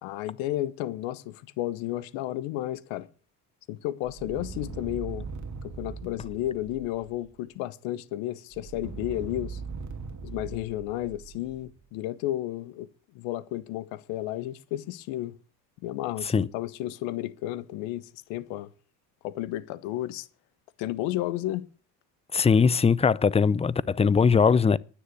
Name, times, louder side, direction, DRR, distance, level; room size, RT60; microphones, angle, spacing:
voice 1, 0.0-3.1 3.7-5.3 5.6-9.6 10.2-12.9 13.1-15.3 15.8-18.7 19.2-20.3 20.8-21.7, left 14 dB, 75° left, 1.2 m, -32 dB
sound 1, 4.1-7.3 8.5-11.8, right 5 dB, 40° right, 2.8 m, -40 dB
voice 2, 22.3-24.8, left 5 dB, 15° left, 0.5 m, -21 dB
9.9 x 9.6 x 9.4 m
supercardioid pair, 75°, 47 cm